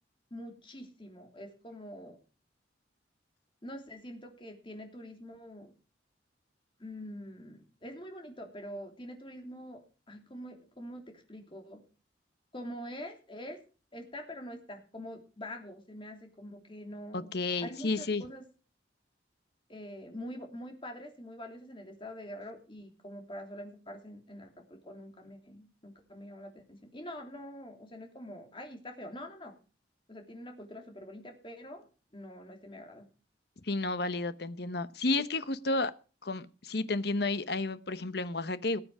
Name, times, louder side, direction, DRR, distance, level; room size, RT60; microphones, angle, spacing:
voice 1, 0.3-2.2 3.6-5.7 6.8-11.8 12.5-13.6 13.9-17.3 17.6-18.4 19.7-29.5 30.1-33.1, equal, 25° left, 3.1 m, -45 dB
voice 2, 17.1-18.2 33.6-35.9 36.2-38.8, left 3 dB, 60° left, 1.0 m, -31 dB
19.5 x 8.0 x 4.8 m
head